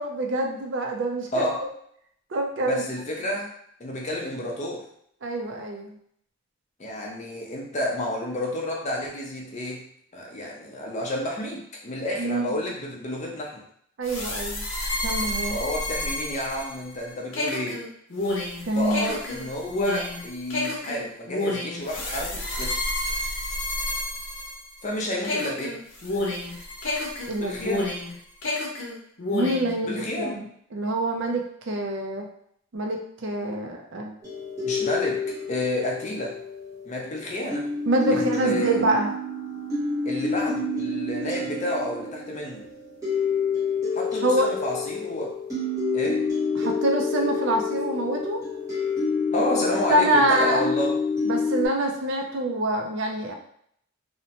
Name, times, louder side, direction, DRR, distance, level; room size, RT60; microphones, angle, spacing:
voice 1, 0.0-1.5 2.3-2.8 5.2-6.0 12.2-12.6 14.0-14.7 15.0-15.6 18.7-19.1 27.3-27.8 29.3-30.4 30.7-32.3 32.7-34.2 37.9-39.1 44.2-44.5 46.6-48.4 49.9-50.7 51.2-53.3, right 1 dB, 60° right, 2 dB, 0.4 m, -25 dB
voice 2, 1.3-1.7 2.7-3.5 3.8-4.9 6.8-9.8 10.1-13.6 15.5-17.8 18.7-22.8 24.8-25.8 27.4-27.9 29.8-30.4 34.6-36.4 36.8-37.7 38.1-38.8 40.0-42.7 43.9-45.4 45.9-46.3 49.3-51.0, left 1 dB, 35° left, -1 dB, 0.5 m, -30 dB
sound 1, 14.0-24.9 25.2-28.1 28.4-29.7, left 1 dB, 65° left, 0.7 m, -29 dB
sound 2, 34.2-37.1 37.5-51.7, left 3 dB, 15° right, 0.9 m, -28 dB
2.7 x 2.1 x 2.8 m, 0.66 s
head